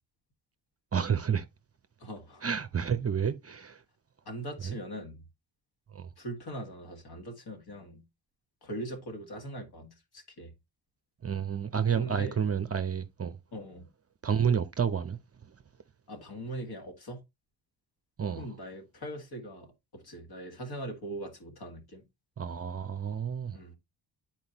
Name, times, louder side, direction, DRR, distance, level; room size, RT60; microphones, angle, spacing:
voice 1, 0.9-1.5 2.4-3.8 4.6-4.8 5.9-6.1 11.2-13.4 14.2-15.2 18.2-18.5 22.4-23.6, right 7 dB, 35° right, 0.6 m, -30 dB
voice 2, 2.0-2.4 4.3-5.2 6.2-8.0 8.6-10.5 12.0-12.4 13.5-13.9 16.1-17.2 18.4-22.0 23.5-23.7, right 1 dB, 55° left, 2.0 m, -41 dB
9.5 x 4.4 x 2.9 m
cardioid pair, 95°, 44 cm